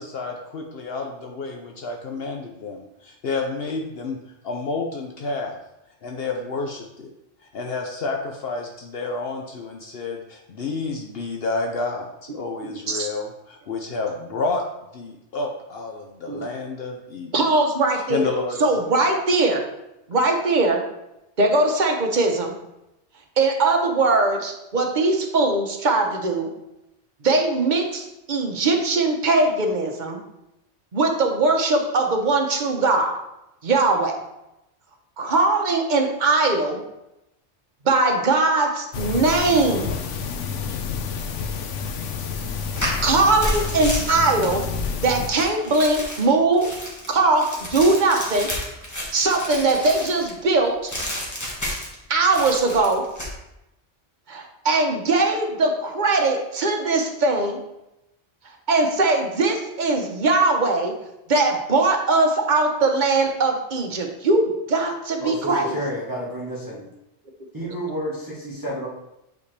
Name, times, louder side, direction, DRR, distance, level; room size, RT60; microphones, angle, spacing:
voice 1, 0.0-4.2 4.4-5.6 6.0-7.1 7.5-14.6 14.9-17.5 17.9-18.7, left 3 dB, 60° left, 2 dB, 0.9 m, -30 dB
voice 2, 12.6-13.1 16.3-16.5 17.3-18.2 18.6-19.6 20.1-20.8 21.4-22.5 23.4-26.5 27.2-30.2 30.9-33.1 33.6-34.2 35.2-36.8 37.8-39.9 43.0-44.6 45.0-46.7 47.1-48.5 49.1-50.9 52.1-53.0 54.3-57.6 58.7-60.9 61.3-65.7, right 3 dB, 45° right, 3 dB, 0.9 m, -20 dB
sound 1, 38.9-45.3, left 6 dB, 90° left, 1.0 m, -29 dB
sound 2, 42.6-50.4 50.9-52.0 52.3-53.3, equal, 15° left, 1.3 m, -31 dB
voice 3, 65.2-66.9 67.5-68.9, equal, 15° right, -8 dB, 1.3 m, -30 dB
8.4 x 4.4 x 3.3 m, 0.89 s
omnidirectional pair, 1.2 m